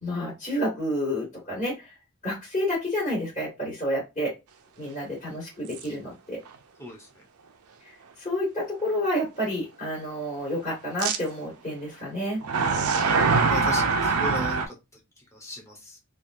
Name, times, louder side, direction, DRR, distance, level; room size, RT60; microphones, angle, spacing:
voice 1, 0.0-1.9 2.2-4.3 4.8-6.4 7.8-12.4, equal, 35° left, -5 dB, 1.8 m, -29 dB
sound 1, 5.7-5.8 6.5-6.6 11.0-11.2 12.4-14.7, right 4 dB, 85° right, 0.5 m, -23 dB
voice 2, 13.5-14.6 15.4-16.0, equal, 15° left, -1 dB, 0.9 m, -35 dB
3.4 x 2.5 x 2.6 m, 0.24 s
head